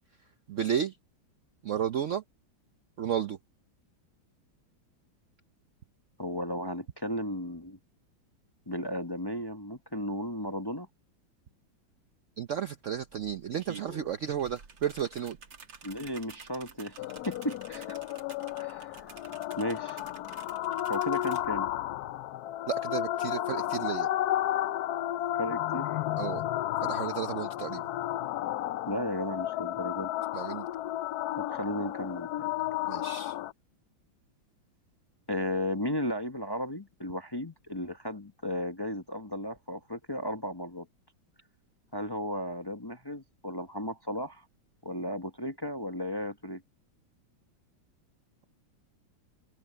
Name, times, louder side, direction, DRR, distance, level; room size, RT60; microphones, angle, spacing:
voice 1, 0.5-1.0 1.6-2.2 3.0-3.4 12.4-15.4 22.7-24.1 26.2-26.4 26.8-27.9 30.3-30.7 32.9-33.4, right 9 dB, 85° right, 0.6 m, -32 dB
voice 2, 6.2-7.8 8.7-10.9 15.8-17.0 17.3-18.0 18.6-19.0 19.6-20.0 20.9-21.7 25.4-26.0 28.9-30.1 31.4-32.5 35.3-40.9 41.9-44.4 44.8-46.6, left 1 dB, 20° left, 0.7 m, -35 dB
sound 1, 12.5-12.6 12.9-21.4, right 5 dB, 70° right, 3.0 m, -50 dB
sound 2, 17.0-33.5, left 13 dB, 75° left, 0.8 m, -33 dB
omnidirectional pair, 2.2 m